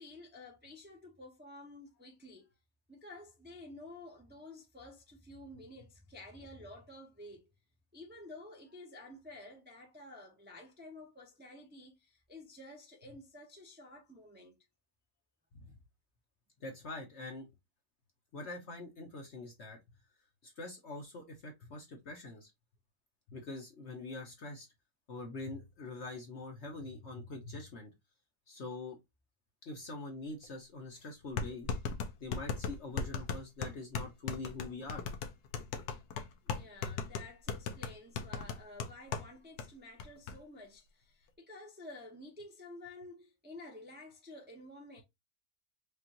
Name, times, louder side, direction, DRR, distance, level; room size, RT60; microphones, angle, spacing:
voice 1, 0.0-2.5 2.9-7.5 7.9-14.6 36.4-45.0, left 2 dB, 10° right, 0.6 m, -51 dB
voice 2, 16.6-17.5 18.3-19.8 20.4-22.5 23.3-24.7 25.1-27.9 28.5-29.0 29.7-31.7 32.2-35.0, left 2 dB, 50° left, 0.9 m, -44 dB
sound 1, 30.4-30.5 31.4-39.3 39.6-39.7 40.0-40.3, left 6 dB, 75° left, 1.2 m, -37 dB
5.1 x 2.4 x 2.9 m
omnidirectional pair, 1.7 m